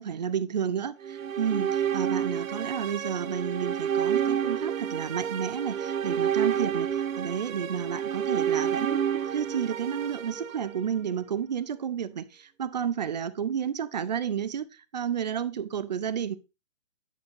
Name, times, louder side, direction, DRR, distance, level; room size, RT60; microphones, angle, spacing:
voice 1, 0.0-0.9 1.4-16.4, right 8 dB, 35° right, 0.4 m, -31 dB
sound 1, 1.0-11.2, right 9 dB, 90° right, 0.6 m, -29 dB
9.3 x 7.1 x 2.6 m
figure-of-eight pair, 140°, 39 cm